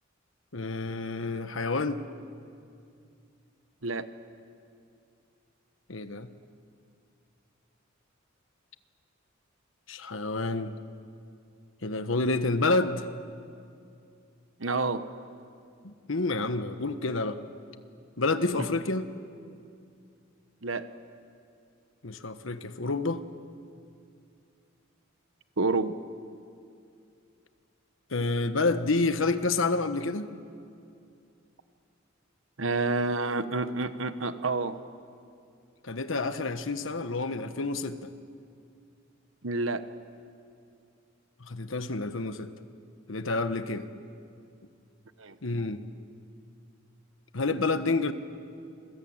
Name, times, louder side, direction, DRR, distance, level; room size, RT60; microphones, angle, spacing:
voice 1, 0.5-2.0 5.9-6.3 9.9-10.7 11.8-13.1 15.8-17.4 18.2-19.1 22.0-23.2 28.1-30.3 35.8-38.1 41.4-42.5 43.1-43.9 45.4-45.8 47.3-48.1, left 3 dB, 75° left, 10 dB, 1.3 m, -29 dB
voice 2, 14.6-15.0 18.5-18.7 20.6-20.9 25.6-25.9 32.6-34.8 39.4-39.8 45.2-45.4, right 3 dB, 75° right, 11 dB, 1.3 m, -29 dB
28.0 x 22.0 x 8.9 m, 2.5 s
head